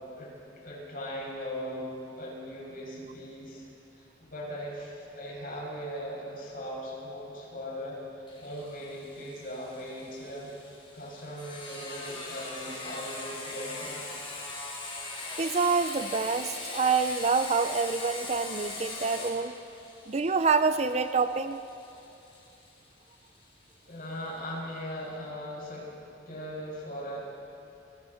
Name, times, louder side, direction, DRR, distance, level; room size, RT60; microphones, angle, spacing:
voice 1, 0.1-3.7 3.9-10.5 10.9-14.1 23.9-27.3, equal, 50° left, -4 dB, 7.0 m, -39 dB
Sawing, 8.3-23.7, left 3 dB, 30° left, 4.3 m, -41 dB
voice 2, 15.4-19.5 20.1-21.6, right 4 dB, 35° right, 11 dB, 0.5 m, -27 dB
29.5 x 20.5 x 4.5 m, 2.8 s
head